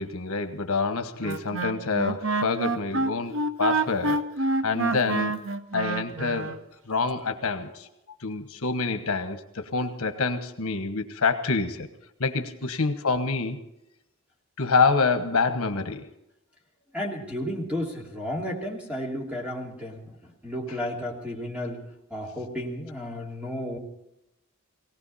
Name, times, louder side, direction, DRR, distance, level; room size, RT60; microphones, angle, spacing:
voice 1, 0.0-4.2 4.6-5.3 5.7-6.6 6.9-7.9 8.2-11.9 12.2-13.6 14.6-16.0, left 4 dB, 85° left, 8 dB, 1.3 m, -27 dB
Wind instrument woodwind instrument, 1.2-6.6, right 3 dB, 60° right, 0.9 m, -27 dB
voice 2, 16.9-21.8 22.1-23.8, left 1 dB, 5° right, -2 dB, 2.8 m, -33 dB
19.0 x 18.0 x 4.2 m, 0.85 s
head